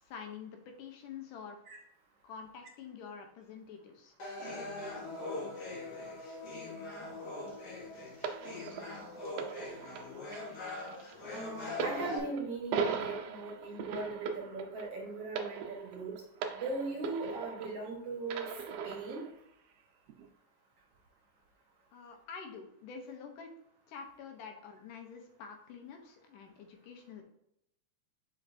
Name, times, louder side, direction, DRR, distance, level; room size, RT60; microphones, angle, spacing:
voice 1, 0.0-1.6 2.2-4.1 21.9-23.5 23.9-27.2, left 6 dB, 80° left, 4 dB, 2.6 m, -47 dB
sound 1, 4.2-12.2, left 2 dB, 50° left, 2.7 m, -42 dB
sound 2, 8.2-17.9 18.3-19.3 20.1-20.2, right 6 dB, 80° right, 1.4 m, -39 dB
voice 2, 11.3-16.1 16.5-18.5 18.8-19.2, right 3 dB, 55° right, 0 dB, 2.1 m, -39 dB
7.4 x 5.7 x 2.7 m, 0.77 s
omnidirectional pair, 3.7 m